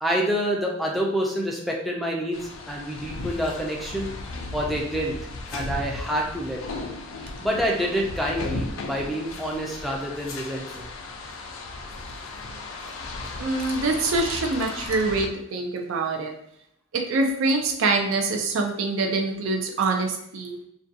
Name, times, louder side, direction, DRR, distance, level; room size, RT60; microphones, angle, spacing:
voice 1, 0.0-4.1 4.5-5.1 5.5-6.9 7.4-10.9, equal, ahead, -2 dB, 0.4 m, -27 dB
sound 1, 2.3-15.3, left 2 dB, 85° left, 0.4 m, -36 dB
voice 2, 13.4-16.3 16.9-20.6, right 3 dB, 85° right, 2 dB, 0.4 m, -25 dB
2.5 x 2.2 x 2.6 m, 0.72 s
head